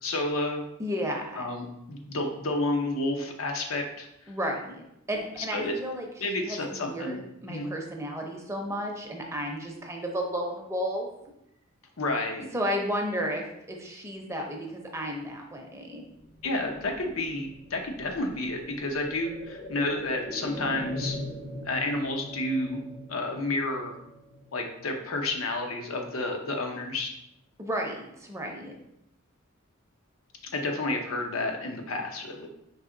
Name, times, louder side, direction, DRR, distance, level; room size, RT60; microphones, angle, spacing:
voice 1, 0.0-0.6 1.4-4.1 5.5-5.7 6.2-7.2 7.5-7.7 12.0-12.5 16.4-21.2 21.6-22.8 23.1-23.9 24.5-27.1 30.5-32.5, left 2 dB, 85° left, 3 dB, 0.7 m, -30 dB
voice 2, 0.8-1.5 4.3-6.1 6.4-11.1 12.5-16.0 27.6-28.7, equal, 15° right, 1 dB, 0.6 m, -33 dB
sound 1, 16.1-25.8 26.2-26.3, left 1 dB, 40° left, 0.7 m, -41 dB
4.7 x 2.8 x 3.7 m, 0.80 s
head